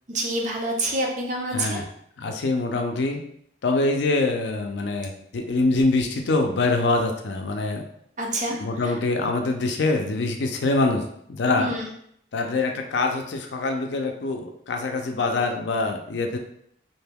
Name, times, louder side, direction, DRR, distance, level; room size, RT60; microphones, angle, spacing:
voice 1, 0.1-1.8 8.2-9.0 11.6-11.9, right 1 dB, 40° right, 0 dB, 0.5 m, -27 dB
voice 2, 2.2-3.2 3.6-7.8 8.6-11.0 11.3-11.7 12.3-16.4, left 3 dB, 70° left, 3 dB, 0.4 m, -24 dB
2.6 x 2.2 x 3.4 m, 0.69 s
head